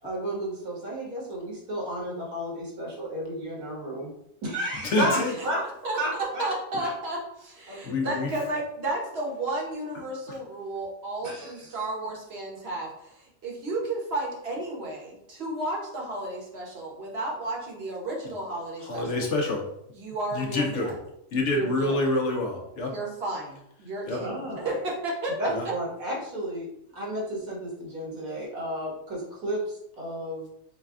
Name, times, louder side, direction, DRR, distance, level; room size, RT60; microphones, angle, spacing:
voice 1, 0.0-4.1 4.4-5.6 6.0-6.5 6.8-6.9 7.7-8.3 11.2-11.7 24.2-24.8 25.4-26.7 26.9-30.5, right 1 dB, 75° right, -5 dB, 1.8 m, -32 dB
voice 2, 4.8-5.3 7.8-8.3 18.8-19.6 20.3-21.0 21.3-22.9 24.1-24.2 25.5-25.7, left 2 dB, 65° left, 1 dB, 0.8 m, -27 dB
voice 3, 5.4-6.0 6.4-19.3 19.9-20.9 21.5-22.0 22.9-25.4, right 2 dB, 50° right, -2 dB, 1.1 m, -33 dB
4.0 x 2.2 x 3.5 m, 0.79 s
omnidirectional pair, 1.5 m